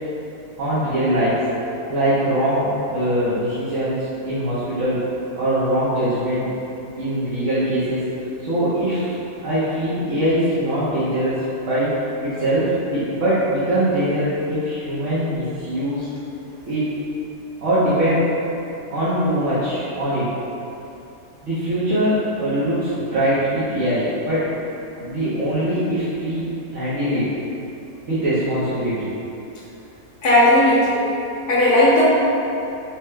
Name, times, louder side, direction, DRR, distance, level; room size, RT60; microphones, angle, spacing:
voice 1, 0.6-1.4 1.9-5.0 5.4-6.5 7.0-8.1 8.4-9.2 9.4-11.9 12.2-16.1 16.6-16.9 17.6-18.2 18.9-20.3 21.4-24.5 25.0-27.3 28.1-29.1, right 1 dB, 55° right, -12 dB, 1.1 m, -22 dB
voice 2, 30.2-31.0 31.5-32.1, left 1 dB, 75° left, -8 dB, 1.4 m, -15 dB
4.5 x 2.2 x 3.2 m, 2.9 s
omnidirectional pair, 1.7 m